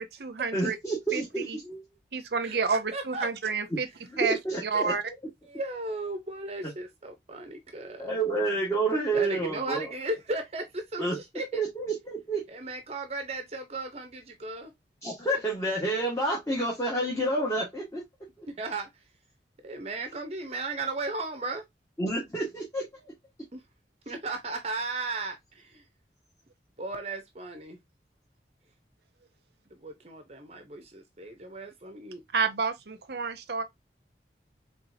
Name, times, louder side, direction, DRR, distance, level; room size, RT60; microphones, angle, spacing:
voice 1, 0.0-0.8 1.1-1.2 1.5-1.6 2.1-3.9 4.2-4.4 4.6-5.0 32.3-33.6, right 5 dB, 70° right, 0.7 m, -29 dB
voice 2, 0.5-1.8 3.7-3.8 4.1-4.9 6.6-6.7 8.0-9.9 11.0-11.2 11.5-12.4 15.0-18.0 18.4-18.5 22.0-23.1, right 2 dB, 15° left, 1.3 m, -29 dB
voice 3, 2.9-3.3 5.4-8.1 9.1-11.6 12.5-14.7 18.5-18.9 19.6-21.6 23.5-23.6 24.1-25.8 26.8-27.8 29.8-32.2, right 2 dB, 35° right, 0.7 m, -35 dB
4.2 x 3.5 x 2.6 m
head